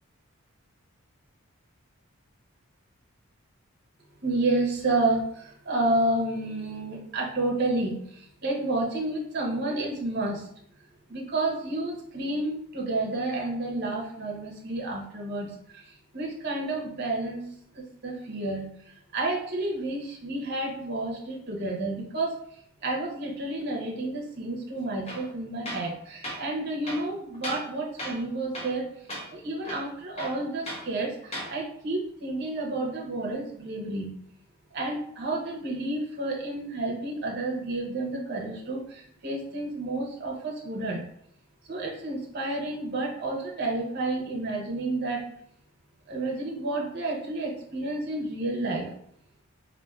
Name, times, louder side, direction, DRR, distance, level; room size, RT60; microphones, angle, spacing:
voice 1, 4.2-10.5 11.1-17.4 17.7-22.3 22.8-28.8 29.3-34.1 34.7-41.0 41.7-45.2 46.1-48.9, right 2 dB, 45° right, -1 dB, 0.7 m, -30 dB
Tools, 25.1-25.3 25.7-25.9 26.2-26.4 26.8-27.7 28.0-28.3 28.5-28.8 29.1-29.3 29.6-30.9 31.2-31.5, equal, 25° left, 0.7 m, -37 dB
4.2 x 2.7 x 2.3 m, 0.67 s
head